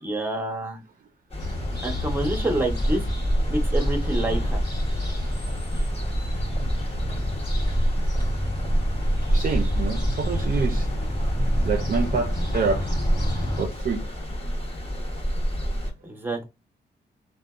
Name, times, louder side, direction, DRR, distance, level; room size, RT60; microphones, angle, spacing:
voice 1, 0.0-0.8 1.8-3.1 3.5-4.6 16.0-16.5, right 2 dB, 10° right, 0.8 m, -27 dB
sound 1, 1.3-15.9, equal, 30° left, 0.9 m, -27 dB
sound 2, 1.4-13.6, left 1 dB, 65° left, 0.9 m, -31 dB
voice 2, 9.3-10.9 11.6-12.8 13.6-14.0, right 5 dB, 50° right, 0.4 m, -27 dB
2.5 x 2.1 x 2.3 m
cardioid pair, 75°, 18 cm